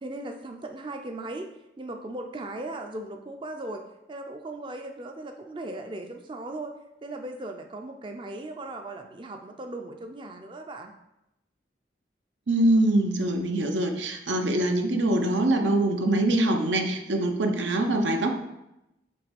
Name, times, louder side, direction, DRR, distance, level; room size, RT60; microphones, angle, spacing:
voice 1, 0.0-1.5 1.8-3.8 4.1-6.7 7.0-10.9, right 2 dB, 25° right, 5 dB, 0.4 m, -37 dB
voice 2, 12.5-18.3, right 1 dB, 85° right, 4 dB, 0.8 m, -24 dB
7.7 x 3.2 x 5.2 m, 0.89 s
head